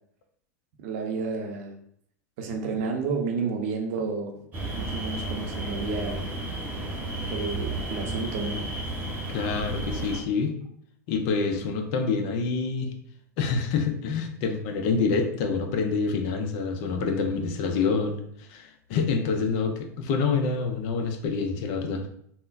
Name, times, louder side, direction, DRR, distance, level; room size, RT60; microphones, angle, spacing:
voice 1, 0.8-1.8 2.4-4.4 4.7-6.3 7.2-8.7, right 4 dB, 50° right, 2 dB, 0.6 m, -31 dB
sound 1, 4.5-10.2, right 2 dB, 20° right, 0.9 m, -32 dB
voice 2, 9.3-10.6 11.1-12.9 13.4-22.1, left 4 dB, 50° left, 5 dB, 0.5 m, -27 dB
3.6 x 2.0 x 2.5 m, 0.69 s
figure-of-eight pair, 90°, 9 cm